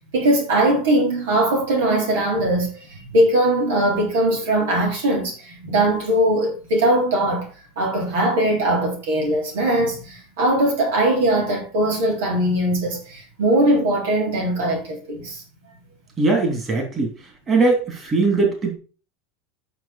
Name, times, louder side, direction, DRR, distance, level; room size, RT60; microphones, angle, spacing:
voice 1, 0.1-7.5 7.7-15.4, right 1 dB, 85° right, 3.5 m, -20 dB
voice 2, 16.2-17.2 17.5-18.7, right 3 dB, 30° right, 3.2 m, -20 dB
9.1 x 6.0 x 4.3 m
supercardioid pair, 115°, 0 cm